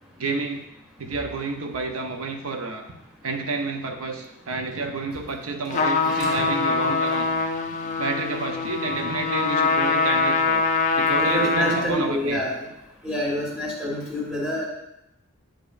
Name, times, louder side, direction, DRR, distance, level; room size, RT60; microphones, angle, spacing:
voice 1, 0.2-0.6 1.0-2.9 3.2-7.3 8.0-10.6 11.0-12.4, right 3 dB, 90° right, 5 dB, 0.7 m, -29 dB
Trumpet, 5.7-12.0, left 4 dB, 35° left, 0.4 m, -23 dB
voice 2, 6.1-6.4 11.2-12.6 13.0-14.7, equal, 5° right, -4 dB, 1.5 m, -27 dB
7.6 x 5.0 x 2.5 m, 0.86 s
head